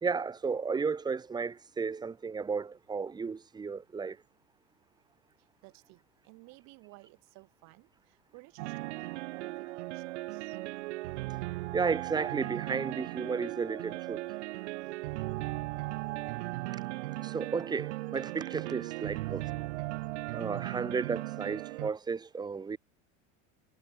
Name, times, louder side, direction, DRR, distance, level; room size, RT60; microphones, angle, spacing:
voice 1, 0.0-4.2 11.7-14.2 17.2-19.4 20.3-22.8, right 5 dB, 10° right, 1.6 m, -33 dB
voice 2, 5.6-10.6 14.8-15.2, right 28 dB, 50° right, 4.6 m, -56 dB
sound 1, 8.6-21.9, right 20 dB, 75° right, 2.4 m, -37 dB
supercardioid pair, 160°, 35 cm